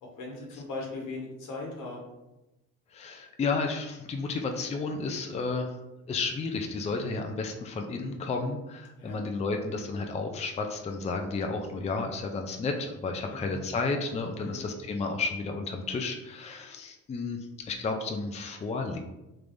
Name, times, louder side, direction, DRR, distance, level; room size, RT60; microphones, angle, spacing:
voice 1, 0.0-2.1 9.0-9.2 13.3-13.6 14.4-14.7, left 3 dB, 85° left, -1 dB, 1.1 m, -39 dB
voice 2, 2.9-5.7 6.1-19.0, left 3 dB, 20° left, 4 dB, 0.4 m, -32 dB
3.4 x 3.2 x 2.5 m, 0.98 s
cardioid pair, 90°, 30 cm